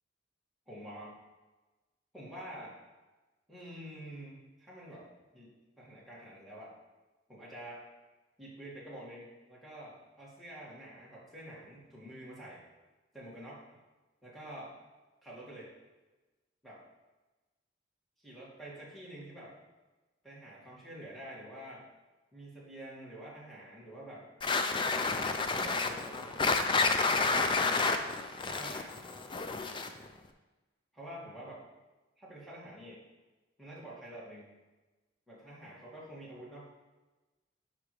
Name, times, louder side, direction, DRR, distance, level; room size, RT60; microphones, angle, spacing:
voice 1, 0.7-1.1 2.1-2.8 3.5-5.1 5.3-6.8 7.3-7.9 8.4-12.6 13.1-13.6 14.2-14.7 15.2-15.7 16.6-16.8 18.2-19.6 20.2-21.9 22.3-24.3 25.4-26.6 26.9-27.9 28.4-29.0 29.6-29.9 30.9-31.6 32.2-33.0 33.6-34.5 35.3-36.7, right 1 dB, ahead, -6 dB, 2.1 m, -48 dB
sound 1, 24.4-30.1, left 4 dB, 25° left, 0.4 m, -30 dB
8.8 x 5.6 x 3.2 m, 1.2 s
head